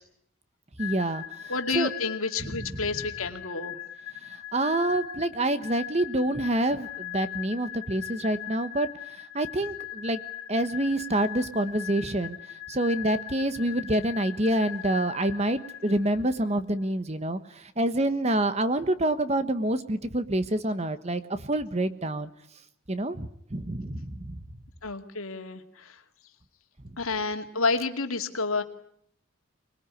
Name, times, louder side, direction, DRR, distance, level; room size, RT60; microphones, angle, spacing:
sound 1, 0.8-16.4, left 12 dB, 5° right, 6.0 m, -40 dB
voice 1, 0.8-1.9 2.4-2.9 4.1-10.2 10.5-22.3 22.9-24.4 26.8-26.9, right 1 dB, 30° right, 12 dB, 1.2 m, -27 dB
voice 2, 1.5-3.8 24.8-26.0 27.0-28.6, left 4 dB, 80° left, 5 dB, 2.4 m, -30 dB
25.0 x 20.5 x 9.9 m, 0.70 s
head